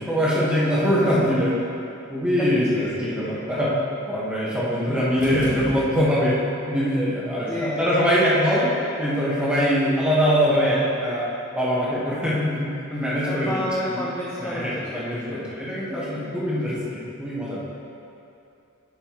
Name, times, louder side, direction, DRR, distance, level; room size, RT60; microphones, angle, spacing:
voice 1, 0.0-1.6 2.1-3.7 4.1-6.4 6.7-8.6 9.0-11.2 11.5-13.6 13.9-14.0 14.4-17.6, equal, 5° right, -8 dB, 1.5 m, -23 dB
voice 2, 2.4-3.3 4.8-5.2 7.4-8.0 8.3-8.9 10.6-10.8 13.3-15.8, left 1 dB, 10° left, -5 dB, 0.5 m, -32 dB
sound 1, 5.2-6.4, left 1 dB, 35° left, 0.9 m, -36 dB
10.5 x 6.6 x 3.2 m, 2.7 s
head